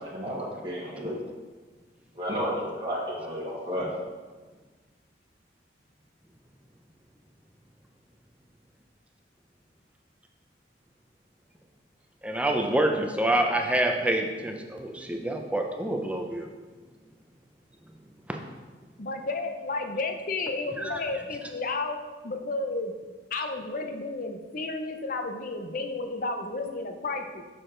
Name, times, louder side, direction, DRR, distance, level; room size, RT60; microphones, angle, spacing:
voice 1, 0.0-1.2 2.2-3.9, equal, 25° right, -8 dB, 1.5 m, -32 dB
voice 2, 12.2-16.5 18.3-18.4 20.8-21.0, right 1 dB, 5° right, 2 dB, 0.5 m, -27 dB
voice 3, 19.0-22.0 22.2-22.9 23.3-27.4, left 3 dB, 50° left, 5 dB, 0.7 m, -32 dB
6.8 x 6.4 x 3.8 m, 1.3 s
head